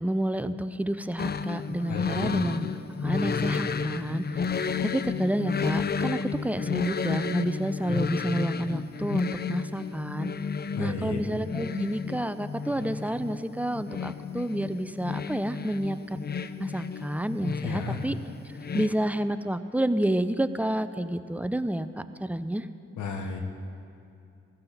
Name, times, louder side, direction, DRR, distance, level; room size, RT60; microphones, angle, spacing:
voice 1, 0.0-2.7 3.0-10.3 10.8-16.2 16.6-18.2 18.7-22.7, right 1 dB, 5° right, 11 dB, 0.7 m, -29 dB
sound 1, 1.2-18.9, left 6 dB, 35° left, 0.6 m, -32 dB
voice 2, 1.9-2.3 10.7-11.2 17.6-18.0 23.0-23.4, left 5 dB, 80° left, 4 dB, 1.2 m, -32 dB
15.5 x 14.5 x 4.1 m, 2.6 s
supercardioid pair, 40°, 29 cm